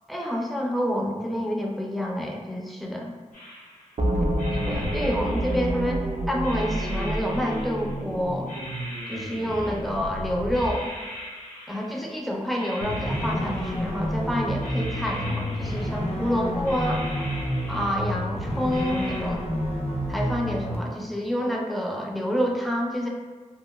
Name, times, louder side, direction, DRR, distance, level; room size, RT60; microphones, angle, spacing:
voice 1, 0.1-3.1 4.5-8.5 9.1-10.9 11.7-17.1 17.7-19.4 20.1-23.1, equal, ahead, 0 dB, 0.4 m, -28 dB
sound 1, 3.3-4.0 4.4-6.0 6.4-8.1 8.5-10.1 10.5-12.2 12.5-14.2 14.6-16.3 16.6-18.3 18.7-19.2, equal, 85° left, 0.9 m, -40 dB
sound 2, 4.0-10.9, right 1 dB, 60° right, 0.4 m, -29 dB
sound 3, 12.8-20.8, equal, 55° left, 0.5 m, -29 dB
2.8 x 2.4 x 2.3 m, 1.4 s
wide cardioid pair, 50°, 13 cm